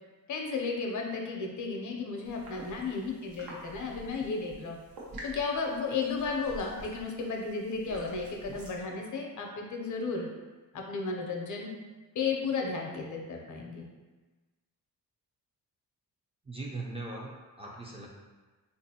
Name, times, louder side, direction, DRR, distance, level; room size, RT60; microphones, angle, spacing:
voice 1, 0.3-4.8 5.2-10.3 10.7-11.7 12.1-13.9, left 4 dB, 60° left, 1 dB, 0.6 m, -34 dB
sound 1, 2.2-8.8, right 1 dB, 80° right, 0.9 m, -48 dB
voice 2, 16.5-18.1, right 2 dB, 15° right, -3 dB, 0.4 m, -40 dB
3.6 x 2.6 x 2.7 m, 1.3 s
cardioid pair, 125°, 35 cm